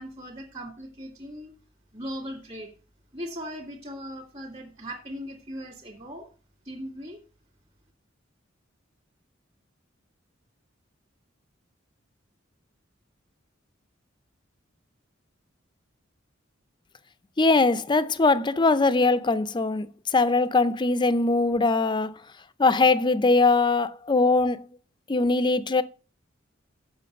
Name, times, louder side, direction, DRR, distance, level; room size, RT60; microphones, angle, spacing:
voice 1, 0.0-1.5 1.9-2.7 3.1-6.3 6.6-7.2, equal, 30° right, 2.1 m, -38 dB
voice 2, 17.4-19.9 20.1-22.1 22.6-24.7 25.1-25.8, left 3 dB, 25° left, 0.5 m, -21 dB
7.7 x 5.9 x 6.6 m
head